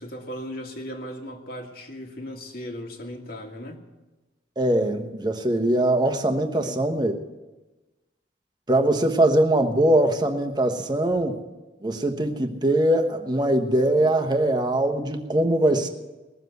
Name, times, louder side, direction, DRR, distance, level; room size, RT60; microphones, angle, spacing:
voice 1, 0.0-3.8 6.4-6.8, equal, 55° left, 2 dB, 2.0 m, -37 dB
voice 2, 4.6-7.1 8.7-11.4 11.8-15.9, right 1 dB, 25° right, 5 dB, 1.1 m, -22 dB
20.5 x 7.5 x 8.0 m, 1.1 s
head